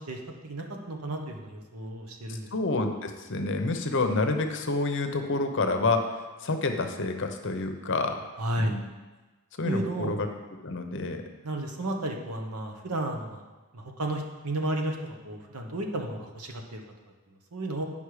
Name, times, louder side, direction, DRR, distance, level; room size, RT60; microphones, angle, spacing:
voice 1, 0.0-2.5 8.4-8.8 9.6-10.2 11.4-13.4 13.7-16.8 17.5-17.8, right 1 dB, 85° right, 3 dB, 1.2 m, -33 dB
voice 2, 2.5-6.0 6.4-8.2 8.6-8.8 9.6-10.3 10.6-11.2, left 3 dB, 55° left, 6 dB, 0.8 m, -28 dB
9.6 x 5.4 x 4.9 m, 1.2 s
head